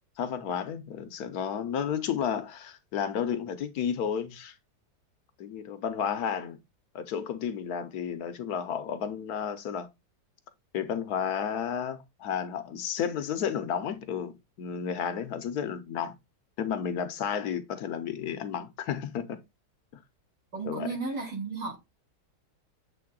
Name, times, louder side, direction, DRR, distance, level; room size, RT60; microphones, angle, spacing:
voice 1, 0.2-4.5 5.4-6.6 6.9-9.9 10.7-16.1 16.6-19.4 20.6-20.9, left 8 dB, 70° left, 1.2 m, -32 dB
voice 2, 20.5-21.8, right 4 dB, 70° right, 3.1 m, -34 dB
7.7 x 3.5 x 3.7 m
omnidirectional pair, 1.8 m